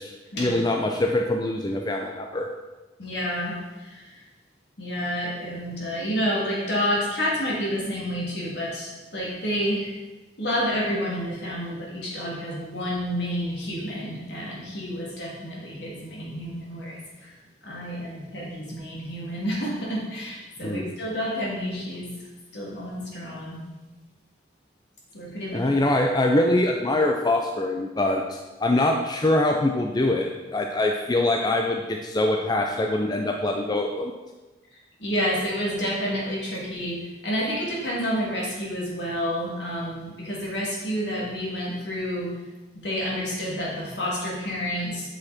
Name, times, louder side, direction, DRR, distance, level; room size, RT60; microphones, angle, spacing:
voice 1, 0.0-2.5 20.6-20.9 25.5-34.1, left 1 dB, 20° left, 2 dB, 0.5 m, -24 dB
voice 2, 3.0-3.6 3.8-4.0 4.8-9.9 10.4-17.0 17.6-22.1 22.5-23.6 25.1-25.6 35.0-37.0 37.2-42.3 42.8-45.1, equal, 70° left, -4 dB, 2.6 m, -29 dB
7.9 x 6.4 x 4.3 m, 1.1 s
head